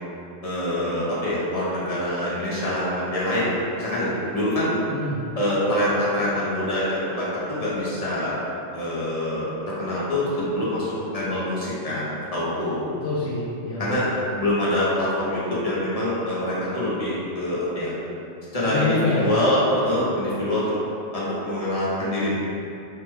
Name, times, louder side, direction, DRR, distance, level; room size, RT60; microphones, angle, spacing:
voice 1, 0.4-4.8 5.4-8.3 8.7-12.8 13.8-14.1 14.4-17.9 18.5-20.7 21.1-22.3, left 1 dB, 50° left, -8 dB, 0.4 m, -25 dB
voice 2, 4.9-5.2 12.9-14.4 18.6-19.3, left 3 dB, 90° left, -10 dB, 1.0 m, -27 dB
3.3 x 2.1 x 3.0 m, 2.7 s
omnidirectional pair, 1.3 m